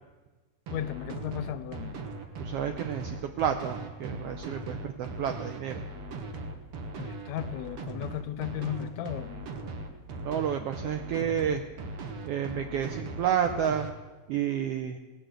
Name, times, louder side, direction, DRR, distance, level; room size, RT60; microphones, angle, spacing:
voice 1, 0.7-1.9 7.0-9.5, left 12 dB, 80° left, 1.7 m, -35 dB
sound 1, 0.7-13.9, right 2 dB, 55° right, 1.8 m, -39 dB
voice 2, 2.4-5.8 10.2-11.6 12.2-13.9 14.3-15.0, right 9 dB, 85° right, 1.4 m, -30 dB
18.0 x 6.3 x 7.9 m
omnidirectional pair, 3.4 m